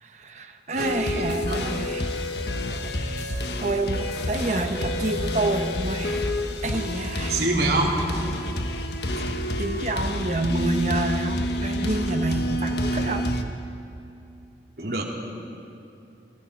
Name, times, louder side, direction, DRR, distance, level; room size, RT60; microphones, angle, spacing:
voice 1, 0.0-2.0 3.2-6.2 6.6-7.4 9.2-9.3 9.6-13.4, right 2 dB, 40° right, 5 dB, 1.3 m, -28 dB
voice 2, 0.7-1.6 7.3-8.0 14.8-15.0, right 2 dB, 60° right, -1 dB, 3.3 m, -26 dB
sound 1, 0.8-13.4, left 1 dB, 70° left, 1.4 m, -28 dB
28.5 x 21.0 x 4.8 m, 2.7 s
head